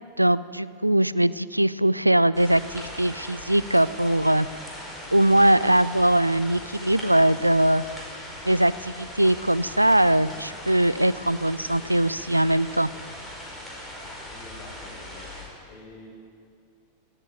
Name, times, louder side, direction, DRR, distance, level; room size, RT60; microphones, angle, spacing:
voice 1, 0.2-4.5 5.1-7.8 8.4-12.9, right 1 dB, 85° right, 18 dB, 0.3 m, -21 dB
sound 1, 2.3-15.4, left 1 dB, 10° left, 4.9 m, -40 dB
voice 2, 14.3-15.3 15.7-16.1, left 2 dB, 45° left, -1 dB, 5.7 m, -47 dB
17.5 x 9.0 x 9.2 m, 2.2 s
figure-of-eight pair, 90°, 0 cm